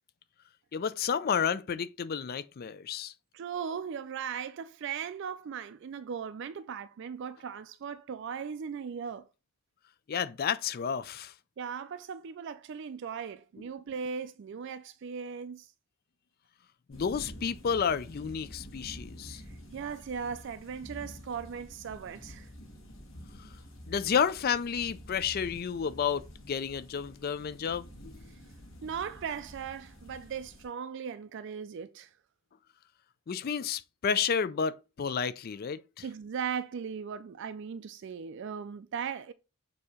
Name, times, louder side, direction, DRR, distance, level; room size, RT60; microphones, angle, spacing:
voice 1, 0.7-3.1 10.1-11.3 16.9-19.4 23.4-23.5 23.9-28.1 33.3-36.0, left 7 dB, 45° left, 0.4 m, -31 dB
voice 2, 3.3-9.3 11.6-15.7 19.3-22.5 28.8-32.1 36.0-39.3, right 7 dB, 55° right, 0.3 m, -38 dB
sound 1, 16.9-30.7, equal, 60° left, 1.7 m, -49 dB
6.8 x 2.8 x 4.9 m
head